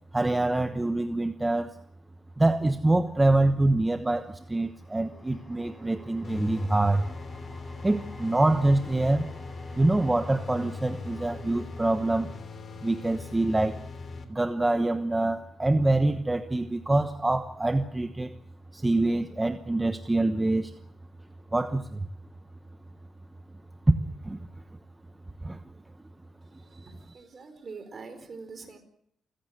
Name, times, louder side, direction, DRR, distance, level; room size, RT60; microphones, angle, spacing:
voice 1, 0.1-1.7 2.4-7.0 7.8-9.3 9.8-12.3 12.8-13.8 14.3-18.3 18.7-20.7 21.5-22.1 23.9-24.0 24.2-24.4 25.4-25.6, right 2 dB, 15° right, 8 dB, 1.1 m, -25 dB
sound 1, 3.4-13.7, equal, 5° left, 5.2 m, -51 dB
sound 2, 6.2-14.3, left 4 dB, 45° left, 3.3 m, -40 dB
voice 2, 26.4-28.8, right 4 dB, 40° right, 8 dB, 4.5 m, -44 dB
28.5 x 15.5 x 8.0 m, 0.72 s
cardioid pair, 135°, 0 cm